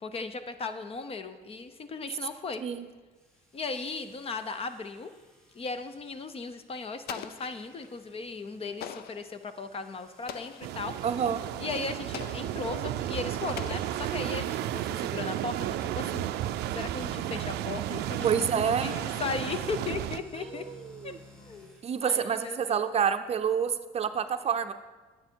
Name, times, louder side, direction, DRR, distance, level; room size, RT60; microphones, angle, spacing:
voice 1, 0.0-2.6 3.5-5.1 5.5-11.0 11.6-16.2 16.7-20.6 21.0-21.7 22.0-22.8, left 4 dB, 35° left, 10 dB, 0.7 m, -37 dB
sound 1, 3.1-22.2, left 1 dB, 5° left, 3.4 m, -55 dB
Explosion, 7.1-8.0 8.8-9.3 10.3-10.8 12.1-12.7 13.6-14.4, left 9 dB, 70° left, 0.6 m, -43 dB
sound 2, 10.6-20.2, right 13 dB, 80° right, 0.4 m, -33 dB
voice 2, 11.0-11.4 18.2-18.9 20.5-20.8 21.0-21.2 21.8-24.7, right 7 dB, 40° right, 9 dB, 0.6 m, -28 dB
9.7 x 9.4 x 4.5 m, 1.2 s
cardioid pair, 110°, 17 cm